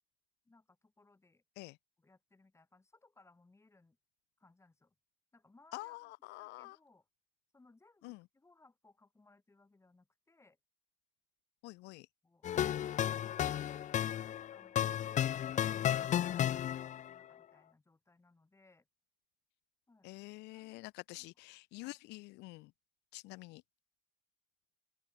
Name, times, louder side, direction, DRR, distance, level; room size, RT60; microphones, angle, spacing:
voice 1, 0.4-1.4 2.0-4.0 4.4-4.9 5.3-6.1 6.4-7.1 7.5-10.6 12.2-12.8 14.5-18.9 19.9-20.1 20.5-20.9 21.1-21.3 21.8-22.0, left 3 dB, 15° left, 7.0 m, -66 dB
voice 2, 5.7-6.8 8.0-8.2 11.6-12.1 20.0-22.7 23.1-23.6, left 22 dB, 90° left, 0.5 m, -47 dB
sound 1, 12.4-17.1, left 10 dB, 45° left, 0.6 m, -33 dB
open air
cardioid pair, 110°, 17 cm